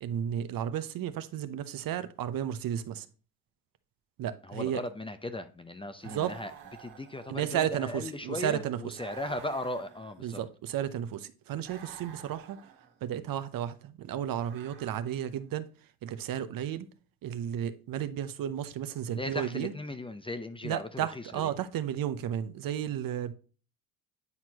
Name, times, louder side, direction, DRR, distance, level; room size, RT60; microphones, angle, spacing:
voice 1, 0.0-3.1 4.2-4.8 6.0-6.3 7.3-8.9 10.2-12.6 13.0-15.7 16.0-16.9 17.2-19.7 20.6-23.3, right 10 dB, 55° right, 12 dB, 0.8 m, -33 dB
voice 2, 4.4-6.5 6.8-10.4 19.1-21.5, left 1 dB, 15° left, 10 dB, 0.6 m, -37 dB
sound 1, 6.0-7.8 8.9-10.5 11.6-13.0 14.3-15.4, right 8 dB, 75° right, 1.7 m, -50 dB
9.5 x 4.4 x 2.8 m, 0.36 s
supercardioid pair, 75°, 41 cm